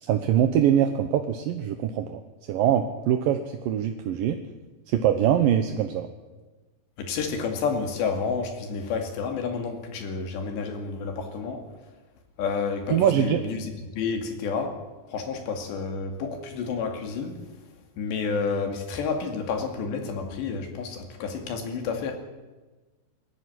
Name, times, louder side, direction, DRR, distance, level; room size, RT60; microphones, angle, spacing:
voice 1, 0.0-2.2 2.5-3.4 3.7-4.4 4.9-6.1 12.9-13.5, right 10 dB, 70° right, 6 dB, 2.2 m, -23 dB
voice 2, 7.0-11.6 12.4-14.8 15.1-17.4 18.0-22.2, left 5 dB, 75° left, 5 dB, 4.5 m, -30 dB
21.0 x 14.0 x 10.0 m, 1.2 s
omnidirectional pair, 5.1 m